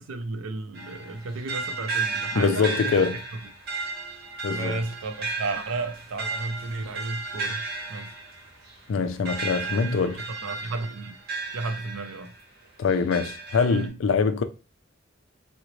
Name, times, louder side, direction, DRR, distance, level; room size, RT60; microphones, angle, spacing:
voice 1, 0.0-2.9 3.3-3.4 4.5-7.6 7.9-8.1 10.1-11.2 11.5-12.3, right 3 dB, 85° right, 0.5 m, -33 dB
sound 1, 0.7-12.4 12.9-13.9, right 4 dB, 50° right, 1.0 m, -34 dB
voice 2, 2.3-3.2 4.4-4.8 8.9-10.2 12.8-14.4, left 5 dB, 75° left, 0.4 m, -24 dB
3.8 x 2.1 x 3.0 m
head